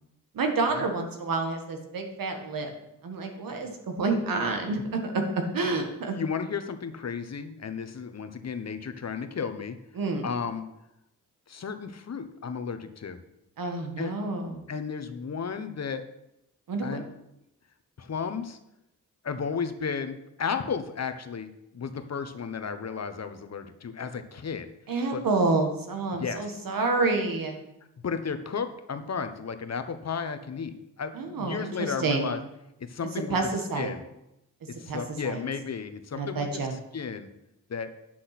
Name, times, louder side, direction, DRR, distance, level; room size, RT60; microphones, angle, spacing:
voice 1, 0.3-2.7 3.0-5.2 5.5-6.2 9.9-10.3 13.6-14.6 16.7-17.0 24.9-27.6 31.1-32.3 33.3-34.0 34.9-35.4 36.1-36.7, right 3 dB, 90° right, 4 dB, 1.7 m, -28 dB
voice 2, 6.1-9.8 10.2-10.7 11.5-13.2 14.0-14.1 14.7-16.1 16.8-17.1 18.0-18.6 19.2-24.7 25.1-25.2 26.1-26.6 28.0-32.4 32.8-33.4 33.8-34.0 34.7-36.6 36.9-37.3 37.7-37.9, left 6 dB, 50° left, 9 dB, 1.0 m, -33 dB
10.0 x 6.2 x 6.0 m, 0.86 s
cardioid pair, 90°, 33 cm